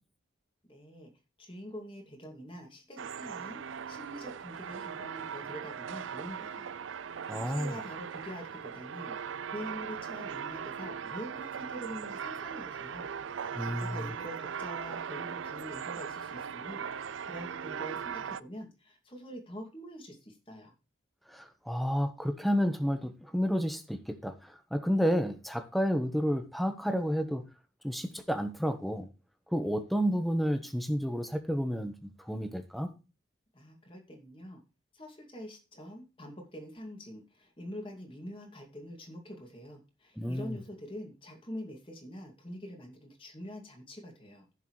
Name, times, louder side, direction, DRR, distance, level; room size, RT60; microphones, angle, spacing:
voice 1, 0.7-1.1 1.4-3.6 3.9-6.7 7.1-9.2 9.5-13.1 13.4-16.8 17.2-20.7 33.5-34.6 34.9-44.4, equal, 30° left, 2.4 m, -45 dB
sound 1, 3.0-18.4, right 7 dB, 90° right, 0.5 m, -39 dB
voice 2, 7.3-7.8 13.6-14.1 21.3-27.4 27.8-29.1 29.5-32.9 40.2-40.6, equal, ahead, 1.1 m, -31 dB
15.0 x 6.6 x 3.2 m
head